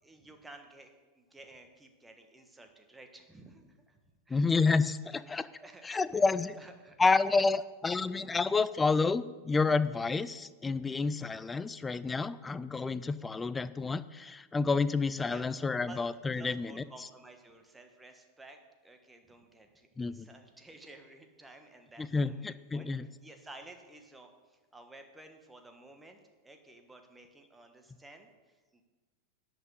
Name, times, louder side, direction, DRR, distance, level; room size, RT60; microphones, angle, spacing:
voice 1, 0.0-0.9 1.1-4.0 4.3-4.4 5.6-6.3 6.6-7.0 15.2-15.4 15.9-16.0 16.4-22.9 23.2-28.8, right 2 dB, 10° right, 5 dB, 1.4 m, -53 dB
voice 2, 4.3-5.5 5.8-6.5 7.0-16.8 20.0-20.3 22.0-23.1, left 4 dB, 15° left, 16 dB, 0.4 m, -29 dB
11.0 x 5.9 x 8.2 m, 1.3 s
figure-of-eight pair, 90°, 0 cm